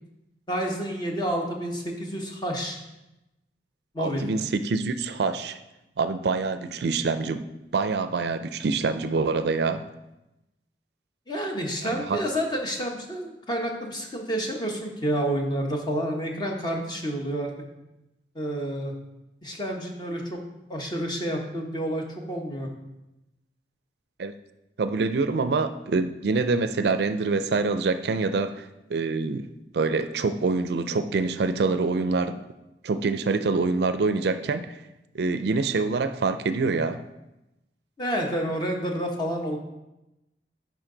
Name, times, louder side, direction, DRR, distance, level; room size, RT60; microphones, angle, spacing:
voice 1, 0.5-2.8 3.9-4.2 11.3-17.5 18.3-18.9 19.4-20.4 20.7-22.7 38.0-39.6, equal, 25° left, 1 dB, 1.1 m, -29 dB
voice 2, 4.0-5.6 6.0-7.5 7.7-9.8 11.8-12.2 24.2-24.3 24.8-29.5 29.7-32.4 32.8-34.7 35.1-37.0, right 4 dB, 60° right, 10 dB, 0.4 m, -25 dB
10.5 x 4.7 x 3.9 m, 0.96 s
head